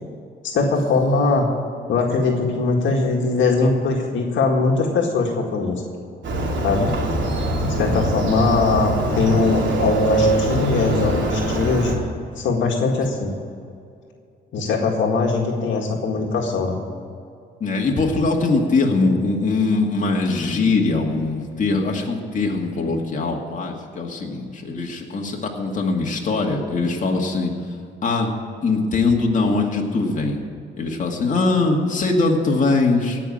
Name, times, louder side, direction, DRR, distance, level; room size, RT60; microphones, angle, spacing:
voice 1, 0.4-1.5 1.9-5.8 6.6-6.9 7.6-11.9 12.4-13.3 14.5-16.8, left 3 dB, 70° left, 1 dB, 1.9 m, -21 dB
Motorcycle, 6.2-12.0, right 2 dB, 70° right, 2.8 m, -23 dB
voice 2, 7.8-8.1 17.6-27.5 28.0-28.3 28.6-30.4 30.8-33.2, left 3 dB, 40° left, 0 dB, 2.2 m, -21 dB
17.0 x 6.0 x 8.8 m, 2.4 s
cardioid pair, 90°, 20 cm